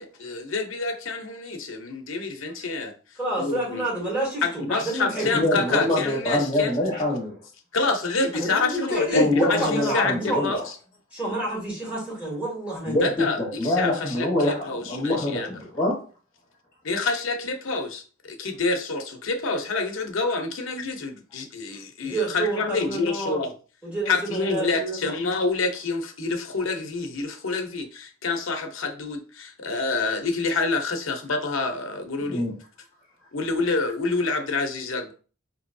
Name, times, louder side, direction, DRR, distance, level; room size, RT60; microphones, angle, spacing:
voice 1, 0.0-2.9 3.4-3.8 4.4-6.7 7.7-10.6 13.0-13.4 13.6-15.5 16.8-23.5 24.1-32.4 33.3-35.1, left 3 dB, 70° left, 0.7 m, -27 dB
voice 2, 3.2-5.9 8.3-10.4 11.1-13.1 22.0-23.4 23.8-25.2, right 1 dB, 5° right, 2.1 m, -29 dB
voice 3, 5.1-7.4 9.1-10.6 12.8-15.9 32.2-32.5, left 1 dB, 20° left, 1.3 m, -25 dB
4.6 x 2.9 x 2.6 m
head